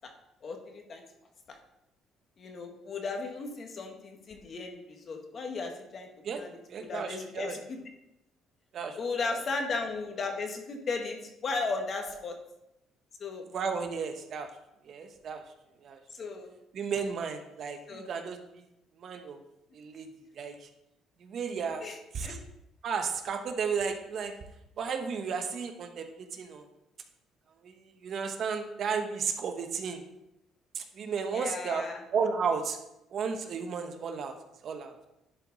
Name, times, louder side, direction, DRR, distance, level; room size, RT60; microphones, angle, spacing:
voice 1, 0.4-1.0 1.5-1.6 2.4-6.1 6.3-6.6 6.9-7.8 9.0-11.2 11.4-12.3 13.2-13.4 16.1-16.5 17.9-18.0 21.8-22.0 22.2-22.3 31.3-32.0, left 4 dB, 45° left, 3 dB, 1.5 m, -35 dB
voice 2, 6.7-7.6 8.7-9.0 9.3-9.4 13.5-14.5 14.8-15.4 15.8-16.0 16.7-18.6 19.0-19.4 19.7-20.1 20.3-20.7 21.2-21.8 22.1-22.4 22.8-24.3 24.8-26.7 27.6-30.0 30.7-32.8 33.1-34.3 34.6-35.1, right 6 dB, 50° right, 6 dB, 0.9 m, -33 dB
11.0 x 4.7 x 4.0 m, 0.87 s
cardioid pair, 115°, 0 cm